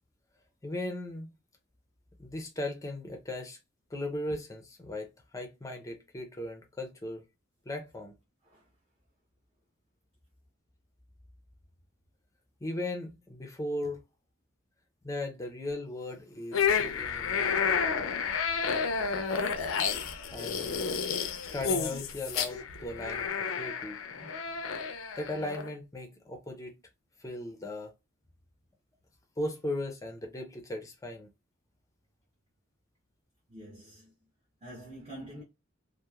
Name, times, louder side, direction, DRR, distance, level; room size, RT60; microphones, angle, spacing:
voice 1, 0.6-1.3 2.2-3.6 3.9-7.2 7.7-8.1 12.6-14.0 15.0-17.5 20.3-21.0 21.5-23.3 23.6-24.3 25.2-26.8 27.2-27.9 29.4-31.3, left 1 dB, 15° left, 0.4 m, -37 dB
sound 1, 16.5-25.7, left 6 dB, 85° left, 0.4 m, -31 dB
voice 2, 33.5-34.1 34.6-35.4, right 1 dB, 30° right, 0.7 m, -46 dB
2.9 x 2.0 x 2.2 m
head